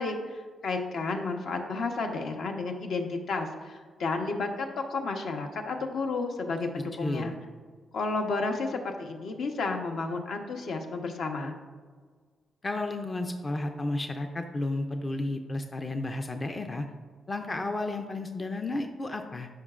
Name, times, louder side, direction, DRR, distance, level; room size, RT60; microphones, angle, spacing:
voice 1, 0.0-7.4 7.9-11.6, left 3 dB, 70° left, 3 dB, 0.9 m, -32 dB
voice 2, 6.8-7.3 12.6-16.9 17.3-19.5, left 2 dB, 20° left, 5 dB, 0.4 m, -32 dB
13.5 x 5.7 x 2.4 m, 1.5 s
wide cardioid pair, 155°, 0 cm